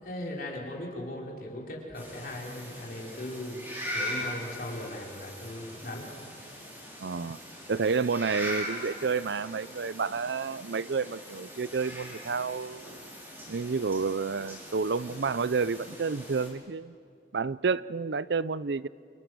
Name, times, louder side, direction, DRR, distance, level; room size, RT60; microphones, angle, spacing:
voice 1, 0.0-3.6 3.9-6.1, left 1 dB, 50° left, -2 dB, 4.4 m, -38 dB
sound 1, 1.9-16.5, equal, 15° right, 5.2 m, -41 dB
voice 2, 7.0-7.4 7.7-13.0 13.5-16.9 17.3-18.9, right 5 dB, 75° right, 18 dB, 0.5 m, -30 dB
29.5 x 28.0 x 6.3 m, 2.4 s
head